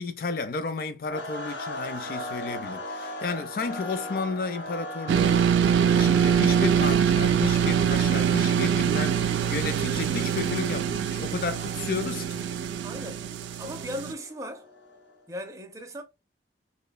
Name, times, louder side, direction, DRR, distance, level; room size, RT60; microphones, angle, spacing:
voice 1, 0.0-12.5, left 4 dB, 50° left, 0.3 m, -33 dB
sound 1, 1.1-15.2, left 1 dB, 85° left, 0.8 m, -40 dB
sound 2, 5.1-14.1, right 8 dB, 90° right, 0.3 m, -24 dB
voice 2, 12.8-13.3 13.6-14.7 15.3-16.0, equal, 20° right, 0.4 m, -37 dB
3.1 x 2.1 x 2.2 m
head